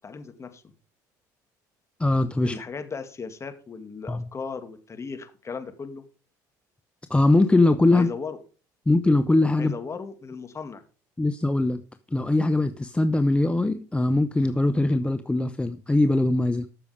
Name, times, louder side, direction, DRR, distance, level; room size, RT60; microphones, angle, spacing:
voice 1, 0.0-0.6 2.4-6.0 7.9-8.4 9.6-10.8, left 5 dB, 30° left, 8 dB, 2.4 m, -36 dB
voice 2, 2.0-2.6 4.1-4.2 7.1-8.1 8.9-9.7 11.2-11.8 12.1-16.7, left 2 dB, 10° left, 10 dB, 0.8 m, -21 dB
13.5 x 6.9 x 5.2 m, 0.37 s
hypercardioid pair, 75°, 9 cm